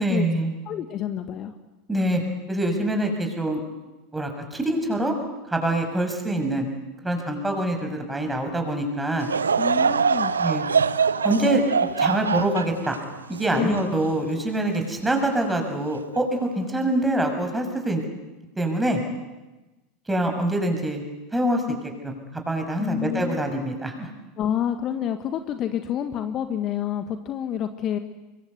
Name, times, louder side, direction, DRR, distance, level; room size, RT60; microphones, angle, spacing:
voice 1, 0.0-0.5 1.9-2.2 2.5-3.6 4.1-5.1 5.5-6.7 7.0-9.3 10.4-10.6 11.2-11.6 12.0-12.9 13.3-18.0 18.6-19.0 20.1-21.0 21.3-21.6 22.0-24.1, right 1 dB, 10° right, 4 dB, 6.5 m, -25 dB
voice 2, 0.6-1.5 9.6-10.3 13.5-13.8 22.8-23.4 24.4-28.0, left 10 dB, 40° left, 8 dB, 1.6 m, -28 dB
Laughter / Crowd, 9.2-14.7 15.2-15.3 16.1-16.4, right 6 dB, 85° right, 0.8 m, -24 dB
24.5 x 22.5 x 8.2 m, 1.1 s
hypercardioid pair, 85°, 0 cm